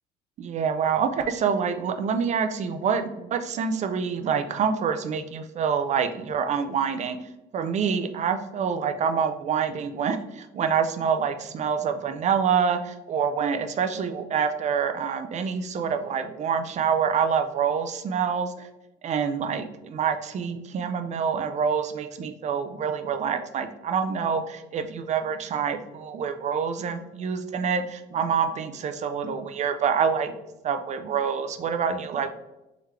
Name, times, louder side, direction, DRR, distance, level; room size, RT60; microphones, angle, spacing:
voice 1, 0.4-7.2 7.5-18.7 19.0-30.3 30.6-32.3, right 6 dB, 45° right, 8 dB, 0.4 m, -26 dB
3.7 x 3.0 x 3.2 m, 0.96 s
cardioid pair, 110°, 17 cm